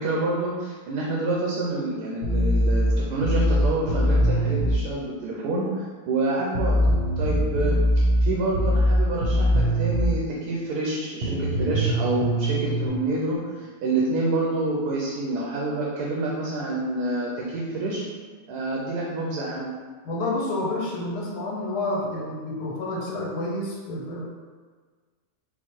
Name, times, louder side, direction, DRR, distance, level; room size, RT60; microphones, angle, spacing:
voice 1, 0.0-6.8 7.2-7.8 8.2-18.0 18.5-19.7, right 2 dB, 80° right, -4 dB, 1.3 m, -27 dB
sound 1, 2.2-4.8 6.5-10.2 11.2-12.9, equal, 45° right, 0.9 m, -22 dB
voice 2, 20.0-24.2, left 2 dB, 75° left, -3 dB, 1.4 m, -29 dB
4.5 x 2.2 x 4.3 m, 1.5 s
omnidirectional pair, 1.7 m